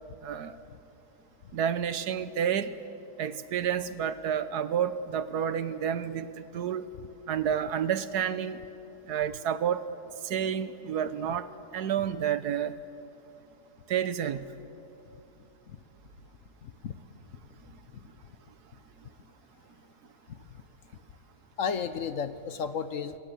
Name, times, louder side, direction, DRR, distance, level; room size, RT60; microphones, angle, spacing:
voice 1, 0.2-0.6 1.5-2.7 3.2-6.9 7.3-8.6 9.0-9.9 10.2-12.7 13.9-14.5, right 8 dB, 80° right, 13 dB, 1.5 m, -30 dB
voice 2, 16.6-16.9 20.3-20.4 21.6-23.2, left 6 dB, 60° left, 12 dB, 1.2 m, -33 dB
27.0 x 21.5 x 8.1 m, 2.8 s
omnidirectional pair, 1.7 m